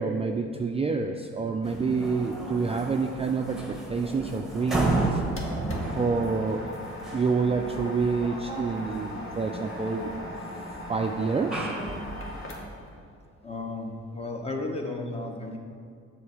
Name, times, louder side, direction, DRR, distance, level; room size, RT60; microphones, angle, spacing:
voice 1, 0.0-5.2 6.0-6.7 7.1-10.1 10.9-11.7, right 4 dB, 20° right, 3 dB, 0.4 m, -27 dB
sound 1, 1.6-12.6, right 2 dB, ahead, 1.3 m, -34 dB
sound 2, 5.4-12.9, left 2 dB, 45° left, 1.5 m, -42 dB
voice 2, 13.4-15.6, left 2 dB, 20° left, 3 dB, 1.0 m, -34 dB
7.2 x 4.4 x 6.3 m, 2.2 s
cardioid pair, 90°, 30 cm